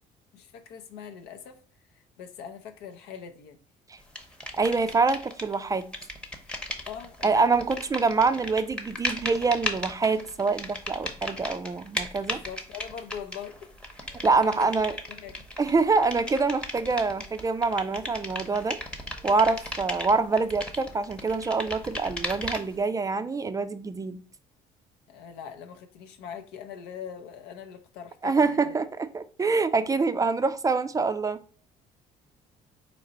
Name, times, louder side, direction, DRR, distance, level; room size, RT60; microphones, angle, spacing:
voice 1, 0.3-1.6 2.2-3.6 6.9-7.4 12.3-13.6 13.9-14.2 14.6-14.7 15.1-15.3 25.1-28.8, left 8 dB, 90° left, 0.7 m, -42 dB
sound 1, 4.2-5.6 5.8-22.8, left 1 dB, 5° left, 0.8 m, -36 dB
voice 2, 4.6-5.8 7.2-12.4 14.2-15.0 15.6-18.8 19.2-24.2 28.2-31.4, right 4 dB, 20° right, 0.3 m, -25 dB
4.1 x 2.9 x 4.0 m
cardioid pair, 110°, 17 cm